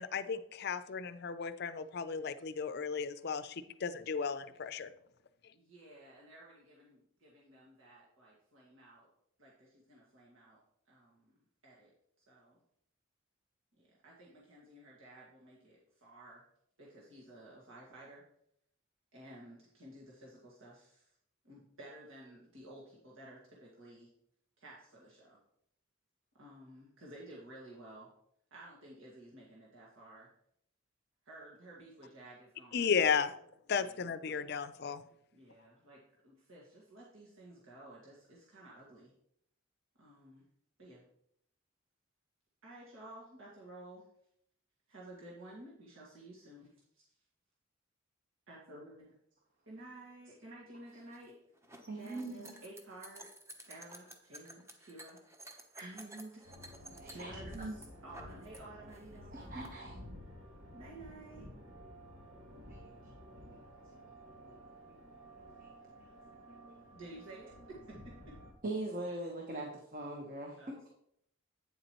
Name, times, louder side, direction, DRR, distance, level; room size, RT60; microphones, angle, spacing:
voice 1, 0.0-4.9 32.7-33.3 33.7-35.0, left 6 dB, 50° left, 13 dB, 0.5 m, -34 dB
voice 2, 5.5-9.1 9.4-10.6 10.9-11.9 12.3-12.6 13.8-16.4 16.8-18.2 19.1-21.0 21.4-24.1 24.6-25.4 26.3-28.1 28.5-30.3 31.3-33.2 33.8-34.0 35.3-39.1 40.0-40.4 40.8-41.0 42.6-44.1 44.9-46.7 46.9-47.0 48.5-49.1 49.7-51.3 51.9-56.4 56.9-57.8 58.0-59.5 60.7-61.5 66.9-68.4 70.6-70.9, right 1 dB, 75° right, -5 dB, 1.9 m, -53 dB
sound 1, 50.9-58.6 58.9-59.7, right 1 dB, 15° right, 0.9 m, -53 dB
voice 3, 51.9-52.6 55.8-56.0 57.0-57.8 59.3-60.0 62.7-62.8 64.9-65.0 65.6-65.7 68.6-70.7, right 2 dB, 45° right, 0 dB, 1.2 m, -41 dB
sound 2, 56.4-68.5, equal, 90° right, 2.6 m, -52 dB
9.1 x 7.8 x 3.0 m, 0.71 s
head